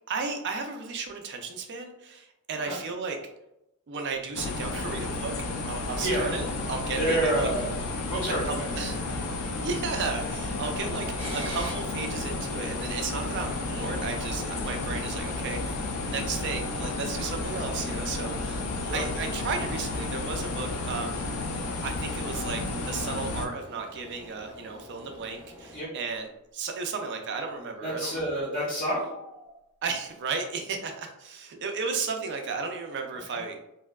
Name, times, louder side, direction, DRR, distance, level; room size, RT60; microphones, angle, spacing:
voice 1, 0.1-3.2 3.9-5.3 5.7-7.5 8.4-9.0 9.6-11.1 11.3-18.6 18.9-21.2 21.8-26.3 26.5-28.2 29.8-33.6, right 4 dB, 55° right, 4 dB, 0.4 m, -34 dB
sound 1, 4.3-23.5, left 2 dB, 85° left, 0.4 m, -32 dB
voice 2, 6.0-6.4 7.0-8.8 18.8-19.0 25.7-25.9 27.8-29.1 33.3-33.4, right 1 dB, 30° left, -7 dB, 0.6 m, -29 dB
sound 2, 11.2-25.9, equal, 10° right, 0.6 m, -46 dB
sound 3, 16.1-17.1 17.8-17.9 19.5-19.6 21.9-23.1 28.9-29.7, equal, 90° right, 0.8 m, -50 dB
2.6 x 2.2 x 2.2 m, 0.87 s
head